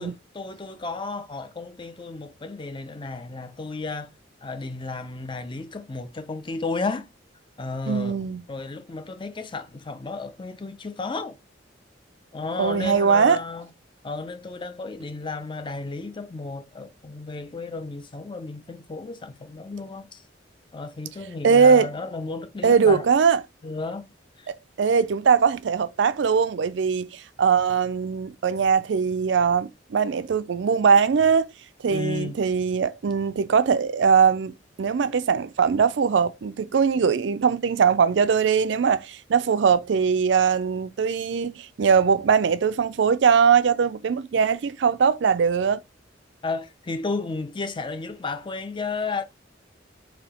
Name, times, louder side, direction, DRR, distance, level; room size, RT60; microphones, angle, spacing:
voice 1, 0.0-4.1 4.4-7.1 7.6-8.2 8.5-11.4 12.3-13.7 14.0-20.2 20.7-23.1 23.6-24.1 24.4-24.5 31.9-32.4 46.4-49.2, left 3 dB, 25° left, 0.5 m, -33 dB
voice 2, 7.9-8.4 12.6-13.4 21.4-21.9 22.6-23.4 24.5-31.5 31.8-45.8, right 6 dB, 65° right, 0.4 m, -21 dB
4.2 x 2.7 x 4.2 m
head